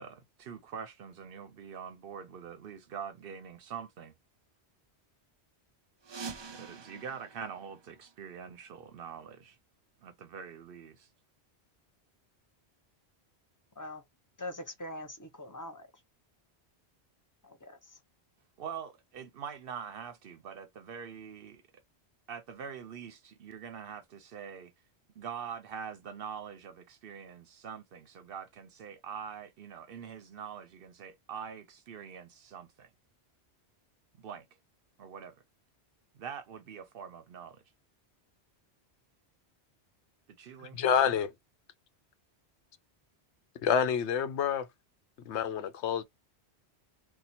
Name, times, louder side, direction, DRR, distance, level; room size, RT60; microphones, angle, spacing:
voice 1, 0.0-4.1 6.5-9.6 10.0-11.1 18.6-21.8 22.3-24.7 25.2-32.9 34.2-34.5 35.0-35.3 36.1-37.6 40.3-41.1, right 7 dB, 65° right, 0.7 m, -44 dB
sound 1, 6.0-8.6, right 5 dB, 45° right, 0.3 m, -46 dB
voice 2, 14.4-15.9 17.4-17.8, left 1 dB, 20° left, 0.5 m, -42 dB
voice 3, 40.6-41.3 43.6-44.7 45.3-46.0, left 8 dB, 80° left, 0.9 m, -28 dB
2.8 x 2.2 x 4.1 m
omnidirectional pair, 1.1 m